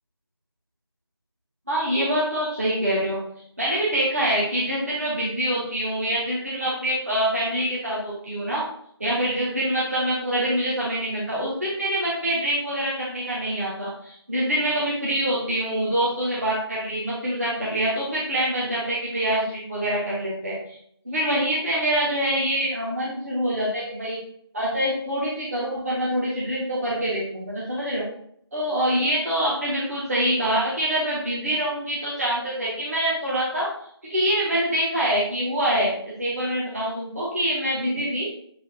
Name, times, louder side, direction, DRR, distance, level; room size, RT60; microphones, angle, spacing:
voice 1, 1.7-3.2 3.6-8.6 9.0-20.7 21.0-24.2 24.5-28.0 28.5-33.7 34.1-38.3, equal, 35° right, -7 dB, 1.0 m, -25 dB
7.1 x 2.7 x 2.6 m, 0.66 s
figure-of-eight pair, 170°, 14 cm